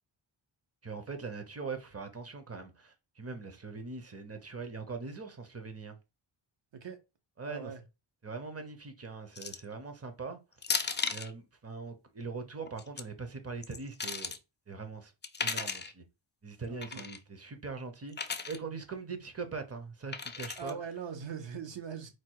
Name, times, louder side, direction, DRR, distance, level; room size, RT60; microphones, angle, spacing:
voice 1, 0.8-6.0 7.4-7.7 8.2-10.4 11.1-14.4 14.7-15.1 15.4-16.0 16.4-20.8, right 4 dB, 30° right, 0.8 m, -41 dB
voice 2, 7.4-7.8 16.7-17.0 20.6-22.1, right 7 dB, 60° right, 1.0 m, -41 dB
sound 1, 9.4-9.7 10.6-11.3 12.7-13.0 13.6-14.4 15.2-15.9 16.8-17.2 18.1-18.6 20.1-20.7, left 5 dB, 25° left, 0.4 m, -35 dB
4.5 x 2.4 x 4.6 m
wide cardioid pair, 130°, 49 cm